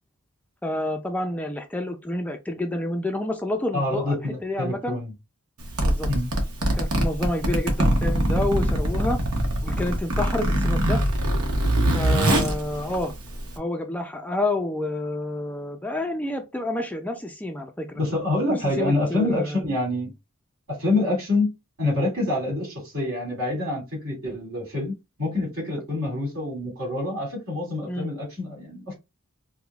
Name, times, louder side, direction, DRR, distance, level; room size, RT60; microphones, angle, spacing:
voice 1, 0.6-5.0 5.8-6.1 6.6-9.2 9.6-11.0 11.9-13.1 13.6-18.0 18.5-19.6 27.9-28.1, left 1 dB, 5° left, 0.3 m, -29 dB
voice 2, 3.7-5.1 6.1-6.3 18.0-20.1 20.7-21.5 21.8-28.9, left 2 dB, 65° right, 2.3 m, -26 dB
Zipper (clothing), 5.6-13.6, right 1 dB, 80° right, 1.0 m, -23 dB
4.9 x 2.2 x 2.3 m
head